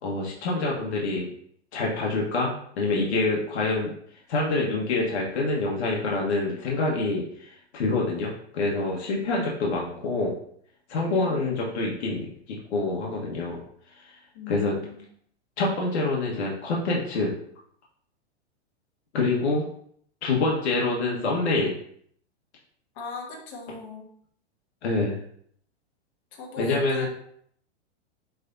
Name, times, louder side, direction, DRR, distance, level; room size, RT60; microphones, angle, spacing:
voice 1, 0.0-1.3 1.7-3.9 4.3-10.3 10.9-13.6 13.9-14.1 14.5-14.7 15.6-17.3 19.1-19.6 20.2-21.7 24.8-25.1 26.6-27.1, left 3 dB, 75° left, -3 dB, 1.7 m, -26 dB
voice 2, 11.1-11.5 14.3-15.1 22.9-24.1 26.3-27.1, left 4 dB, 45° left, -1 dB, 2.0 m, -40 dB
9.7 x 3.6 x 2.8 m, 0.66 s
hypercardioid pair, 130°, 34 cm